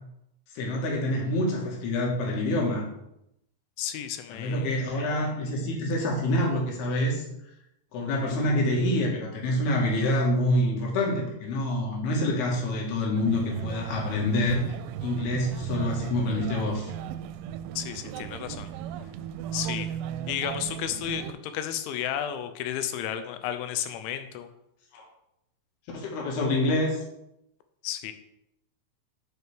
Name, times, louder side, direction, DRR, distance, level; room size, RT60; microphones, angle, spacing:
voice 1, 0.6-2.9 4.3-7.2 7.9-14.6 15.0-16.9 24.9-25.1 25.9-27.0, left 1 dB, 65° left, -1 dB, 3.4 m, -26 dB
voice 2, 3.8-4.8 17.8-18.7 19.5-19.9 20.3-24.5 27.8-28.1, left 10 dB, 85° left, 9 dB, 3.1 m, -32 dB
sound 1, 13.2-21.3, right 11 dB, 90° right, 3.0 m, -36 dB
11.0 x 6.3 x 3.5 m, 0.83 s
omnidirectional pair, 5.4 m